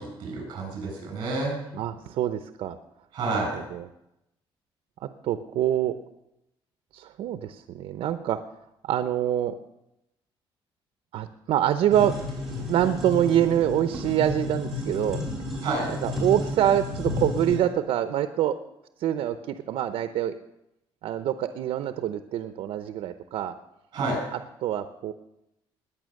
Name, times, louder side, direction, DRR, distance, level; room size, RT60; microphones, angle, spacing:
voice 1, 0.0-1.6 3.1-3.6 15.6-15.9 23.9-24.2, right 3 dB, 45° right, 0 dB, 8.0 m, -29 dB
voice 2, 1.7-2.8 3.3-3.9 5.2-5.9 6.9-8.4 8.8-9.5 11.1-12.1 12.7-15.2 15.9-18.6 19.0-20.3 21.0-23.5 24.3-25.1, right 11 dB, 75° right, 10 dB, 0.7 m, -25 dB
sound 1, 11.9-17.6, left 2 dB, ahead, 4.4 m, -32 dB
20.0 x 8.8 x 6.5 m, 0.88 s
cardioid pair, 170°, 10 cm